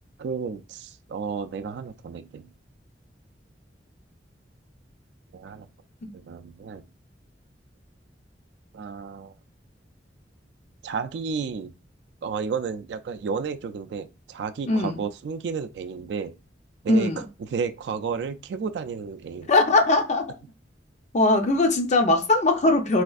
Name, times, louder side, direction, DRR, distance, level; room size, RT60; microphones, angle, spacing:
voice 1, 0.2-2.5 5.3-5.7 6.1-6.8 8.7-9.3 10.8-11.7 12.2-16.3 16.8-19.5, right 5 dB, 65° right, 0.3 m, -32 dB
voice 2, 14.7-15.0 16.9-17.2 19.5-20.2 21.1-23.0, left 2 dB, 40° left, 0.5 m, -20 dB
4.1 x 2.5 x 2.3 m
head